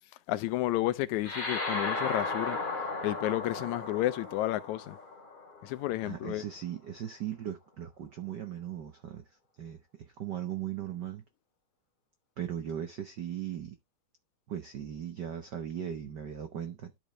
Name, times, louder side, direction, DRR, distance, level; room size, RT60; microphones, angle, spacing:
voice 1, 0.3-2.6 3.0-5.0 5.6-6.4, left 16 dB, 85° left, 2.0 m, -31 dB
sound 1, 1.2-6.0, left 3 dB, 20° left, 2.2 m, -35 dB
voice 2, 6.0-9.3 9.6-11.2 12.4-13.8 14.5-16.9, right 10 dB, 80° right, 0.9 m, -38 dB
12.0 x 5.0 x 3.2 m
omnidirectional pair, 3.3 m